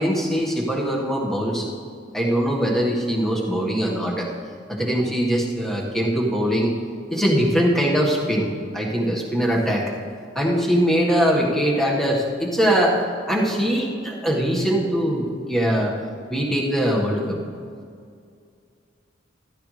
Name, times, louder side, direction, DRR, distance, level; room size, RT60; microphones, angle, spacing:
voice 1, 0.0-1.7 2.1-4.3 4.7-6.7 7.1-9.9 10.3-13.0 13.3-16.0 16.3-17.4, equal, ahead, -3 dB, 1.6 m, -22 dB
14.5 x 13.5 x 3.3 m, 2.3 s
head